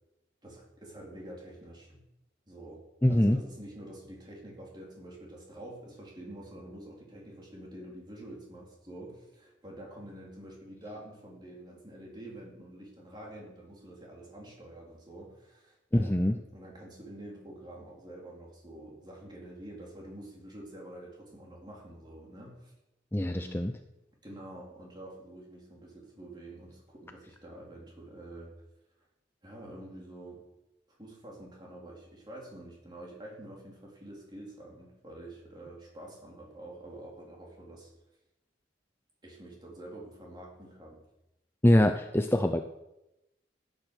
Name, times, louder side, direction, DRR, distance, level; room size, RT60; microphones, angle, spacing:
voice 1, 0.4-2.0 2.5-2.8 3.1-22.7 23.3-23.6 24.2-28.5 29.4-30.4 31.0-37.9 39.2-41.0, right 1 dB, 25° right, -3 dB, 4.0 m, -47 dB
voice 2, 3.0-3.4 15.9-16.4 23.1-23.7 41.6-42.6, left 1 dB, 15° left, 7 dB, 0.5 m, -24 dB
14.0 x 9.1 x 6.6 m, 0.93 s
head